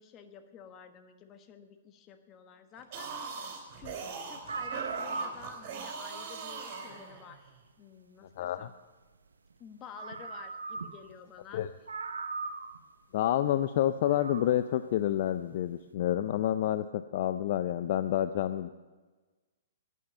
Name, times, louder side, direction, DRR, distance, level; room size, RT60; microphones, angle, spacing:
voice 1, 0.0-7.5 7.8-8.7 9.6-11.6, left 7 dB, 30° left, 8 dB, 1.3 m, -51 dB
sound 1, 2.8-7.5, right 5 dB, 45° right, 3.3 m, -41 dB
cry of a fox, 4.0-4.1 4.4-5.8 7.2-7.3 9.5-9.6 9.9-11.1 11.4-11.5 11.9-12.8 13.9-14.5, right 4 dB, 80° right, 0.9 m, -38 dB
voice 2, 8.4-8.7 11.5-11.7 13.1-18.7, left 12 dB, 50° left, 11 dB, 0.5 m, -29 dB
11.0 x 9.4 x 9.0 m, 1.3 s
figure-of-eight pair, 115°, 0 cm